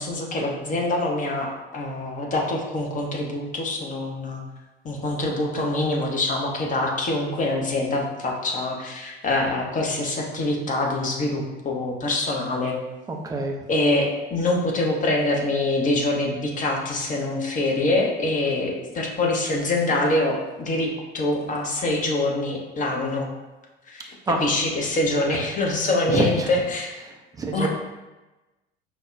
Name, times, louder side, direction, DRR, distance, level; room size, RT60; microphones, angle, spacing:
voice 1, 0.0-4.4 4.8-12.8 13.7-23.3 23.9-24.0 24.4-26.9 27.5-27.7, left 2 dB, 25° left, 0 dB, 0.6 m, -25 dB
voice 2, 13.1-13.7 24.3-24.4 25.3-25.4 25.8-26.5 27.0-27.7, right 2 dB, 10° right, 1 dB, 0.3 m, -27 dB
5.1 x 2.0 x 2.4 m, 1.1 s
figure-of-eight pair, 70°, 32 cm